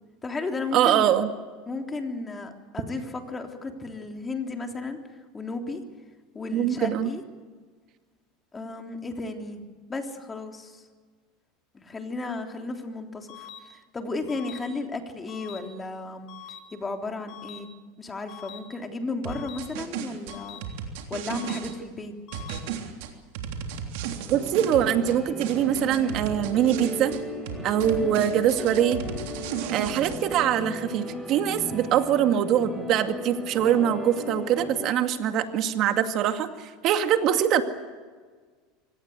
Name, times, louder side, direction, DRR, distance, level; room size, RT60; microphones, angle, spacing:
voice 1, 0.2-1.0 1.6-5.0 5.3-5.8 6.3-7.2 8.5-9.6 9.9-10.8 11.7-16.3 16.7-17.7 18.0-20.6 21.1-22.4 27.8-28.2, left 3 dB, 20° left, 4 dB, 3.4 m, -34 dB
voice 2, 0.7-1.3 6.5-7.1 24.3-27.1 27.6-29.0 29.7-37.6, right 10 dB, 50° right, 7 dB, 2.2 m, -23 dB
sound 1, 13.3-13.6 14.3-14.6 15.3-15.6 16.3-16.6 17.3-17.6 18.3-18.6 19.3-19.6 20.3-20.6 21.3-21.6 22.3-22.6, left 10 dB, 55° left, 4.1 m, -43 dB
sound 2, 19.2-21.7 22.3-25.2 25.4-27.2 27.5-30.2, right 8 dB, 75° right, 3.3 m, -34 dB
sound 3, 24.3-34.9, left 1 dB, 5° right, 7.8 m, -36 dB
24.5 x 18.0 x 8.1 m, 1.5 s
supercardioid pair, 110°, 0 cm